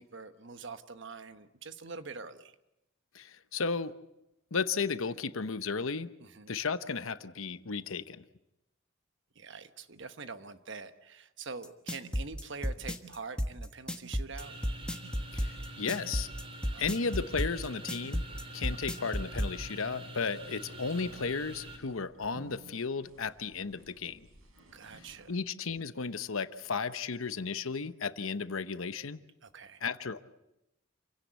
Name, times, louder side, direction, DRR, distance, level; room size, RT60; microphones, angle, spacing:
voice 1, 0.0-2.5 6.2-6.5 9.3-14.6 16.7-16.9 24.7-25.4 29.4-29.8, right 4 dB, 60° right, 10 dB, 1.2 m, -45 dB
voice 2, 3.1-3.9 4.5-6.1 6.5-8.2 15.3-16.3 16.8-18.2 18.5-24.3 25.0-29.2 29.8-30.2, left 5 dB, 75° left, 12 dB, 0.9 m, -34 dB
sound 1, 11.6-19.5, equal, 5° left, 1.4 m, -32 dB
sound 2, 14.4-21.8, right 1 dB, 25° right, 3.4 m, -46 dB
sound 3, 20.2-25.3, right 1 dB, 85° right, 4.9 m, -55 dB
27.5 x 16.5 x 8.2 m, 0.91 s
head